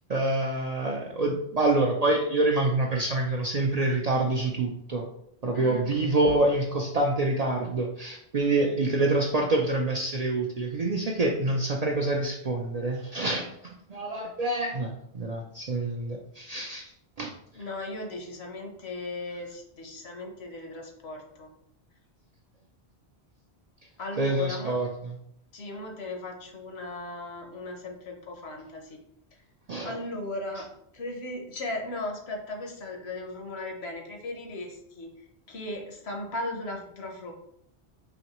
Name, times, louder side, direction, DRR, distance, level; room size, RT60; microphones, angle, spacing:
voice 1, 0.1-5.0 5.4-13.5 13.9-14.9 15.1-16.8 17.2-17.3 24.2-25.2 29.7-30.0, right 2 dB, 55° right, 0 dB, 0.4 m, -26 dB
voice 2, 5.5-5.9 17.5-21.5 24.0-24.8 25.5-29.0 29.8-30.6 30.9-35.1 35.5-37.3, left 2 dB, 70° left, 2 dB, 1.1 m, -37 dB
4.9 x 3.0 x 2.9 m, 0.71 s
omnidirectional pair, 1.1 m